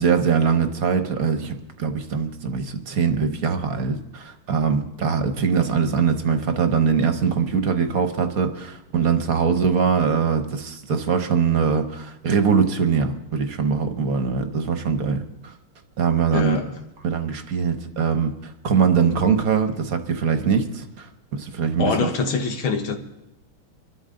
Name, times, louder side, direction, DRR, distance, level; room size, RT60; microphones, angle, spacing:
voice 1, 0.0-15.2 16.0-16.6 17.0-21.1 21.3-22.1, right 6 dB, 50° right, 7 dB, 1.4 m, -22 dB
voice 2, 16.3-16.7 21.8-23.0, left 4 dB, 70° left, 4 dB, 2.2 m, -24 dB
26.0 x 13.0 x 3.9 m, 0.92 s
omnidirectional pair, 2.3 m